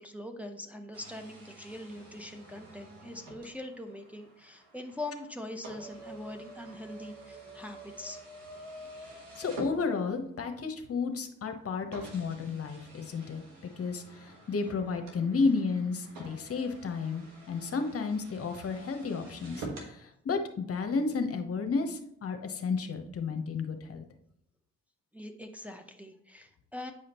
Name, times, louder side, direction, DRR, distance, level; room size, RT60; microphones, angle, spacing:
voice 1, 0.0-8.2 19.2-19.3 25.1-26.9, left 1 dB, 5° right, 3 dB, 0.8 m, -42 dB
sound 1, 0.9-10.4 11.1-11.2 11.9-19.9, right 2 dB, 90° right, 1.4 m, -48 dB
voice 2, 9.4-24.0, left 4 dB, 45° left, 6 dB, 0.9 m, -32 dB
8.7 x 5.0 x 2.9 m, 0.73 s
supercardioid pair, 60°, 31 cm